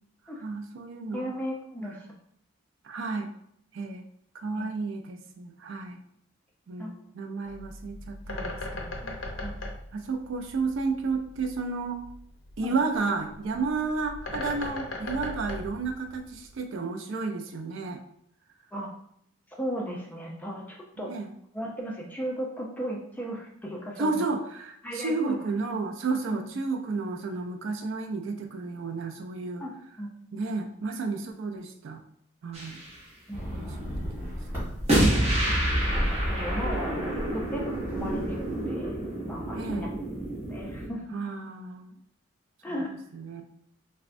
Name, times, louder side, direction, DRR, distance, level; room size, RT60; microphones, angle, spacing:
voice 1, 0.4-1.3 2.8-3.3 3.7-4.0 4.3-6.0 6.7-9.0 9.4-9.5 9.9-12.0 12.6-18.0 21.1-21.3 24.0-29.6 30.3-32.0 32.4-32.8 33.5-34.8 35.3-35.6 39.5-39.9 41.1-41.9 42.7-42.8 43.1-43.4, right 4 dB, 70° right, 4 dB, 0.4 m, -32 dB
voice 2, 1.1-2.0 4.6-4.8 6.8-6.9 9.0-9.2 9.4-9.5 12.6-12.8 18.7-18.9 19.6-21.1 21.5-24.2 24.8-25.4 26.3-26.5 29.6-29.7 30.0-30.1 33.3-33.7 36.3-39.0 39.3-39.9 40.5-41.2 42.6-42.9, equal, 10° left, -2 dB, 0.4 m, -36 dB
Bird, 7.4-16.6, left 2 dB, 70° left, 0.6 m, -39 dB
sound 1, 32.5-32.9 34.9-40.9, right 1 dB, 30° right, 0.7 m, -28 dB
sound 2, 33.3-38.7, equal, 10° right, 1.3 m, -36 dB
3.4 x 2.1 x 2.5 m, 0.70 s
head